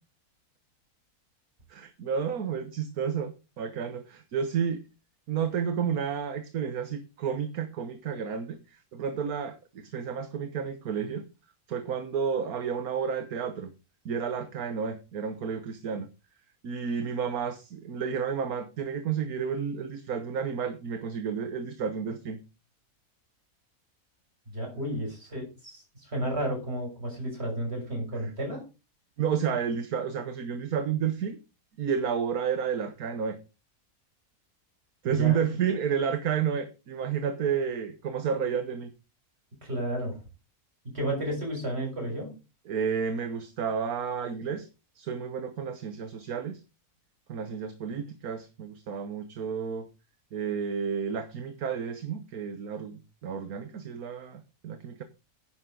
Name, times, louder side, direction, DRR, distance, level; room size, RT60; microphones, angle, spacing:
voice 1, 1.7-4.8 5.3-11.2 11.7-13.7 14.0-16.1 16.6-22.4 28.1-28.2 29.2-31.4 31.8-33.4 35.0-38.9 42.7-44.7 44.9-46.6 47.3-49.9 50.3-55.0, right 7 dB, 70° right, 1.6 m, -31 dB
voice 2, 24.5-28.6 35.0-35.4 39.6-40.1 40.8-42.3, right 1 dB, 40° right, 6.8 m, -32 dB
10.5 x 10.5 x 3.8 m
omnidirectional pair, 1.6 m